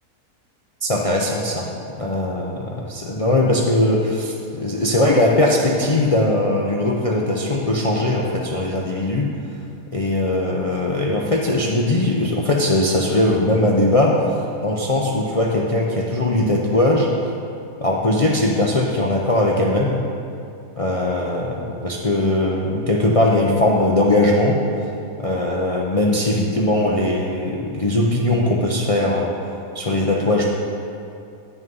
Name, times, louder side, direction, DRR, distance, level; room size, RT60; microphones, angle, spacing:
voice 1, 0.8-1.7 2.0-9.3 9.9-17.1 17.8-20.0 20.8-24.6 25.2-29.3 29.7-30.5, left 1 dB, 65° left, -2 dB, 0.3 m, -20 dB
9.3 x 6.1 x 5.4 m, 2.6 s
omnidirectional pair, 1.7 m